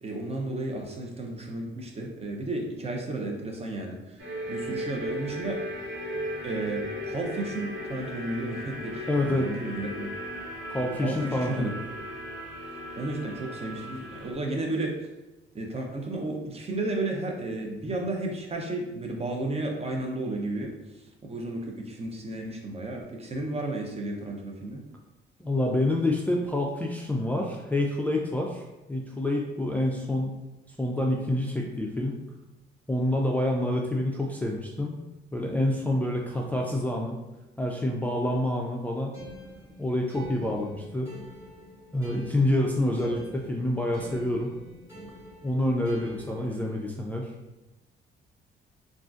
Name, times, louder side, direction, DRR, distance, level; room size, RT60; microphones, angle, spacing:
voice 1, 0.0-4.2 4.5-5.6 6.4-10.1 11.0-11.7 13.0-14.9 15.5-20.7 20.9-24.8, right 2 dB, 30° right, 1 dB, 0.6 m, -33 dB
sound 1, 4.2-14.3, equal, 65° right, 1.3 m, -36 dB
voice 2, 9.1-9.5 10.7-11.7 25.4-28.6 28.9-30.4 30.7-32.2 32.9-35.0 35.3-37.2 37.6-39.2 39.8-41.1 41.9-44.5 45.4-47.3, left 1 dB, 10° left, -1 dB, 0.3 m, -27 dB
sound 2, 39.1-46.8, equal, 15° right, 1.4 m, -47 dB
3.6 x 2.4 x 2.5 m, 1.0 s
cardioid pair, 90°, 20 cm